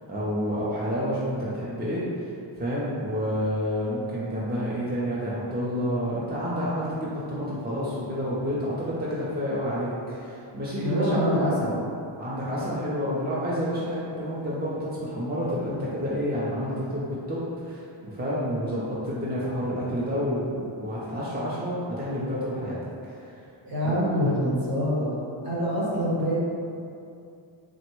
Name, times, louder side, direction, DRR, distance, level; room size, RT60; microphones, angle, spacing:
voice 1, 0.1-2.3 2.6-11.1 12.2-22.8 23.0-23.3 23.8-23.9, equal, 20° right, -8 dB, 0.5 m, -29 dB
voice 2, 10.8-11.8 23.6-25.2 25.4-26.4, equal, 50° right, -7 dB, 1.0 m, -25 dB
3.4 x 2.0 x 3.0 m, 2.5 s
wide cardioid pair, 90°, 46 cm